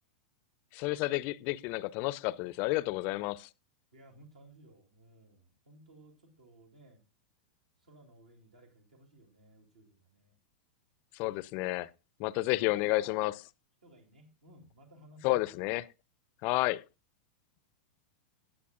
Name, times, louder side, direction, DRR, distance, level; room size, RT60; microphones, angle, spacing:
voice 1, 0.7-3.5 11.1-11.9 12.2-13.3 15.2-15.9 16.4-16.8, left 19 dB, 40° left, 0.5 m, -31 dB
voice 2, 3.9-7.0 7.8-10.3 12.6-13.2 13.8-15.7, right 1 dB, 70° right, 2.6 m, -58 dB
17.5 x 8.5 x 2.4 m
figure-of-eight pair, 95°, 4 cm